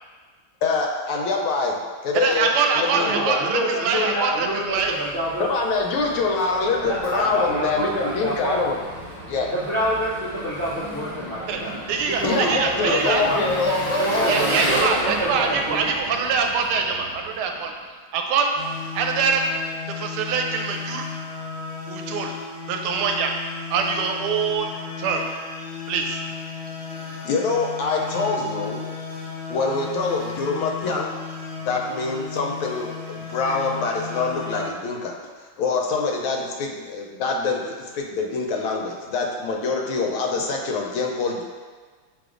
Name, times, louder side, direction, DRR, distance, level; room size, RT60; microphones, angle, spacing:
voice 1, 0.6-3.4 5.4-8.8 9.3-9.5 12.2-14.3 27.2-28.8 29.5-31.1 31.7-35.1 35.6-41.4, left 4 dB, 80° left, 0 dB, 1.4 m, -25 dB
voice 2, 2.1-4.9 11.5-11.6 11.9-13.2 14.2-17.7 18.1-18.5 18.9-19.4 20.0-21.1 21.9-22.3 22.7-23.3 23.7-24.7 25.0-25.2 25.9-26.2, right 5 dB, 85° right, 3 dB, 1.4 m, -24 dB
voice 3, 2.7-5.4 6.8-8.6 9.5-11.7 12.1-13.4 14.0-15.9, right 1 dB, 65° right, -11 dB, 0.5 m, -27 dB
Engine, 4.2-17.8, equal, 20° right, 1.1 m, -33 dB
sound 1, 18.6-34.7, left 5 dB, 55° left, 1.5 m, -35 dB
6.0 x 3.3 x 2.4 m, 1.5 s
omnidirectional pair, 2.3 m